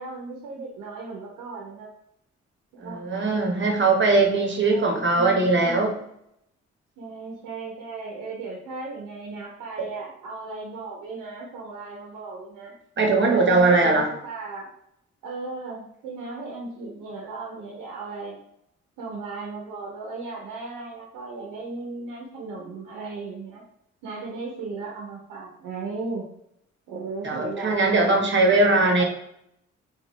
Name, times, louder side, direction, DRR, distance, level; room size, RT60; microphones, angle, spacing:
voice 1, 0.0-1.9 2.7-3.0 3.9-5.9 7.0-12.7 13.3-14.7 15.2-18.4 19.0-23.6 24.0-26.3 26.9-29.0, right 3 dB, 85° right, -2 dB, 0.8 m, -36 dB
voice 2, 2.8-5.9 13.0-14.1 27.2-29.0, right 3 dB, 35° right, 2 dB, 1.2 m, -20 dB
3.9 x 2.5 x 3.1 m, 0.73 s
supercardioid pair, 50°, 31 cm